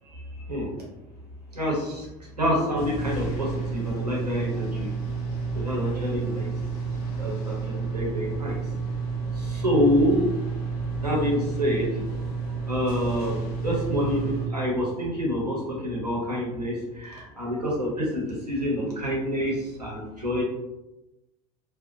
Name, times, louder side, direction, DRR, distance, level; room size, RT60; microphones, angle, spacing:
voice 1, 0.1-0.7 1.5-2.1 2.4-4.9 5.5-6.5 7.2-8.7 9.3-10.2 11.0-12.0 12.7-20.4, equal, 90° right, -4 dB, 0.8 m, -27 dB
sound 1, 2.8-14.5, right 4 dB, 70° left, 0.7 m, -30 dB
2.6 x 2.1 x 2.5 m, 0.96 s
figure-of-eight pair, 70°, 20 cm